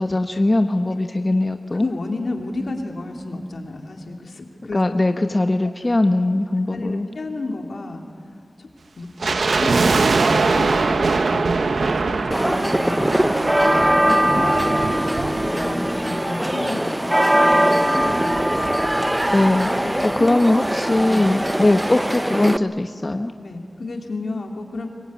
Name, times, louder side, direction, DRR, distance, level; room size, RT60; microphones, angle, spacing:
voice 1, 0.0-1.9 4.7-7.1 19.3-23.3, left 2 dB, 35° left, 6 dB, 1.0 m, -20 dB
voice 2, 1.7-5.0 5.6-5.7 6.7-8.0 8.6-8.7 9.0-14.6 15.2-18.9 20.0-20.3 20.9-21.7 23.4-24.9, left 2 dB, 80° left, 3 dB, 2.8 m, -32 dB
sound 1, 9.2-16.5 16.7-16.8 17.5-19.3 19.6-19.7 19.9-20.2 20.7-20.8, right 3 dB, 80° right, 1.0 m, -23 dB
sound 2, 12.3-22.6, right 1 dB, 10° right, 0.7 m, -21 dB
24.5 x 21.5 x 9.5 m, 2.3 s
wide cardioid pair, 65°, 0 cm